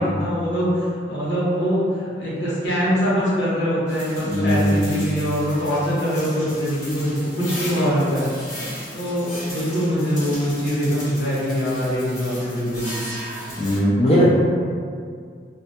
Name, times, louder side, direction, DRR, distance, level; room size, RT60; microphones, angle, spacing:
voice 1, 0.0-8.3 8.9-13.0, equal, 70° left, -8 dB, 0.8 m, -23 dB
sound 1, 3.9-13.8, left 1 dB, 20° left, 1.0 m, -36 dB
voice 2, 4.3-5.0 13.6-14.3, equal, 35° left, -9 dB, 0.3 m, -18 dB
2.2 x 2.1 x 2.7 m, 2.1 s
head